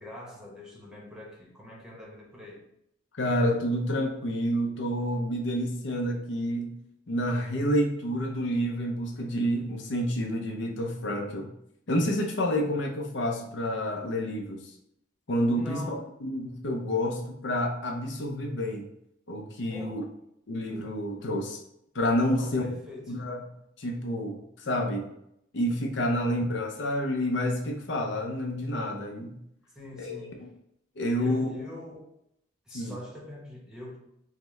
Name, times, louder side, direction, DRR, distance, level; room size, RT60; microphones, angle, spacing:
voice 1, 0.0-2.6 15.5-16.1 19.7-20.1 22.3-23.2 26.1-26.3 29.7-30.5 31.1-32.1 32.7-34.0, left 1 dB, 5° right, -3 dB, 0.8 m, -43 dB
voice 2, 3.2-6.7 7.1-11.5 11.9-14.7 15.3-18.9 19.3-20.0 20.5-21.6 21.9-22.6 23.1-23.4 23.8-25.1 25.5-29.4 30.0-30.5 31.0-31.5 32.7-32.9, equal, 65° left, 1 dB, 0.6 m, -29 dB
5.7 x 2.1 x 3.1 m, 0.77 s
head